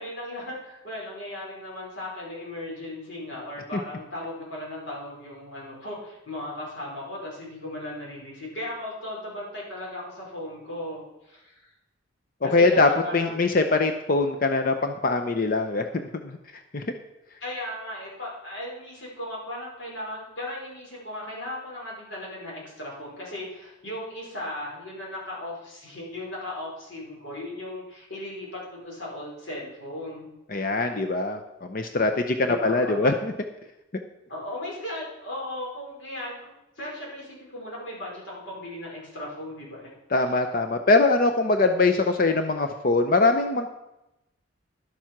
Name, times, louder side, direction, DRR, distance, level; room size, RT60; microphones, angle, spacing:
voice 1, 0.0-11.7 12.4-13.6 17.4-30.3 32.4-33.1 34.3-39.9, left 1 dB, 70° left, -4 dB, 5.0 m, -37 dB
voice 2, 12.4-16.0 16.7-16.8 30.5-33.3 40.1-43.7, left 3 dB, 45° left, 6 dB, 0.7 m, -22 dB
11.0 x 7.5 x 5.9 m, 0.92 s
head